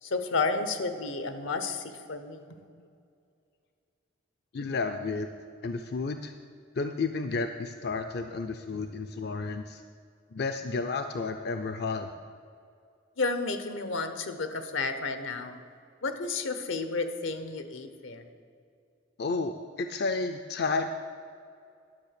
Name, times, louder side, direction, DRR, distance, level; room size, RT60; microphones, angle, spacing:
voice 1, 0.0-2.4 13.2-15.6 16.0-18.2, left 3 dB, 80° left, 9 dB, 0.9 m, -31 dB
voice 2, 4.5-5.3 5.6-6.3 6.8-9.8 10.3-12.1 19.2-20.9, left 4 dB, 55° left, 7 dB, 0.4 m, -31 dB
10.5 x 6.4 x 6.7 m, 2.4 s
head